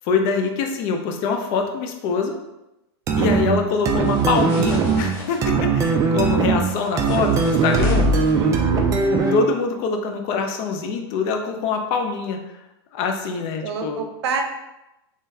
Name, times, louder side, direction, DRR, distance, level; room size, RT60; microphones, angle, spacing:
voice 1, 0.0-2.4 3.2-8.1 9.3-12.4 12.9-14.0, left 4 dB, 45° left, 4 dB, 0.6 m, -24 dB
sound 1, 3.1-9.5, right 4 dB, 25° right, 0.4 m, -20 dB
sound 2, 4.0-5.4 6.6-8.3, left 1 dB, 15° left, 1.0 m, -40 dB
voice 2, 8.3-8.9 13.6-14.4, right 4 dB, 85° right, 4 dB, 0.7 m, -28 dB
3.8 x 3.2 x 2.7 m, 0.94 s
supercardioid pair, 140°, 14 cm